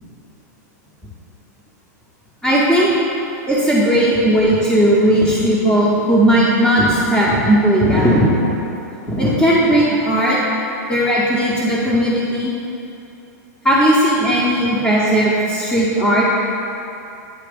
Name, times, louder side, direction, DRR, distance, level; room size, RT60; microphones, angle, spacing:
voice 1, 2.4-2.9 3.5-8.5 9.1-10.4 10.9-12.5 13.6-16.2, equal, 5° left, -10 dB, 0.8 m, -16 dB
8.6 x 2.9 x 5.1 m, 2.8 s
supercardioid pair, 145°, 10 cm